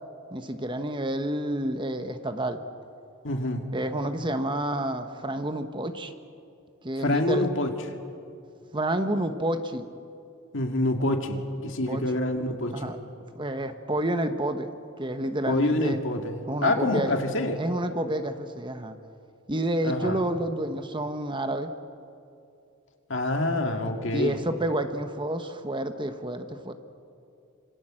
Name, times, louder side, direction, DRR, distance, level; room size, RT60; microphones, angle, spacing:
voice 1, 0.3-2.6 3.7-6.1 6.8-7.5 8.7-9.9 11.9-12.0 12.7-13.0 13.4-14.7 15.0-16.0 16.5-17.1 17.6-19.0 19.5-21.7 24.1-26.7, right 1 dB, 20° right, 8 dB, 1.0 m, -29 dB
voice 2, 3.2-3.6 7.0-7.7 10.5-12.9 15.5-17.6 19.8-20.2 23.1-24.4, left 1 dB, 60° left, 4 dB, 2.2 m, -26 dB
26.5 x 25.5 x 7.6 m, 2.6 s
head